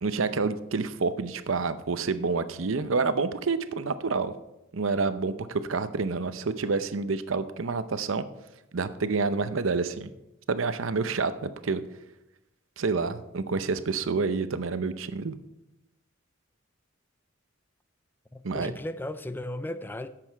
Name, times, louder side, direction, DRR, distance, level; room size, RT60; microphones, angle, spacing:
voice 1, 0.0-4.3 4.7-8.2 8.7-10.1 10.5-11.8 12.8-15.4 18.4-18.7, right 4 dB, 85° right, 12 dB, 0.7 m, -28 dB
voice 2, 18.3-20.1, left 1 dB, 10° left, 12 dB, 0.4 m, -35 dB
11.0 x 7.8 x 4.5 m, 0.92 s
head